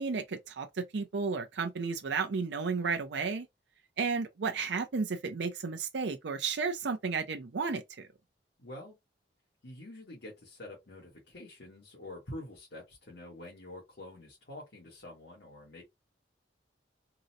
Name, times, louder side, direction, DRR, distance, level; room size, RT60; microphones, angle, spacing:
voice 1, 0.0-3.5 4.0-8.1, right 5 dB, 75° right, 0.5 m, -33 dB
voice 2, 8.6-9.0 9.6-15.8, left 1 dB, 70° left, 1.3 m, -47 dB
3.8 x 2.0 x 2.7 m
head